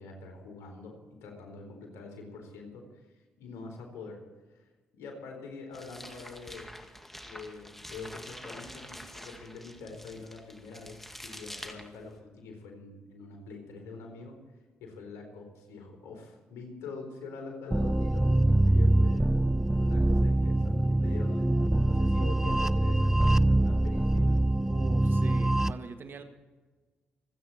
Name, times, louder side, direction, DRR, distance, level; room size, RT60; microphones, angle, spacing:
voice 1, 0.0-4.2 4.5-6.7 7.2-14.4 14.8-19.3 19.8-24.4, left 4 dB, 80° left, 2 dB, 4.3 m, -45 dB
sound 1, 5.7-12.2, equal, 5° left, 2.1 m, -46 dB
sound 2, 17.7-25.7, right 1 dB, 10° right, 0.5 m, -24 dB
voice 2, 24.7-26.2, right 4 dB, 55° right, 7 dB, 1.8 m, -42 dB
26.5 x 9.3 x 4.4 m, 1.3 s
supercardioid pair, 55°, 4 cm